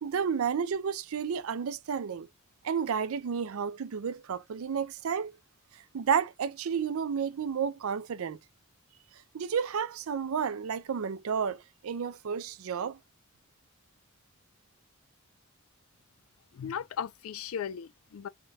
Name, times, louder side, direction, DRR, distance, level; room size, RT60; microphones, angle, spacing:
voice 1, 0.0-2.3 2.6-5.3 5.9-8.4 9.3-13.0, right 7 dB, 80° right, 0.4 m, -31 dB
voice 2, 16.5-18.3, left 8 dB, 75° left, 0.4 m, -36 dB
3.6 x 2.2 x 2.7 m
head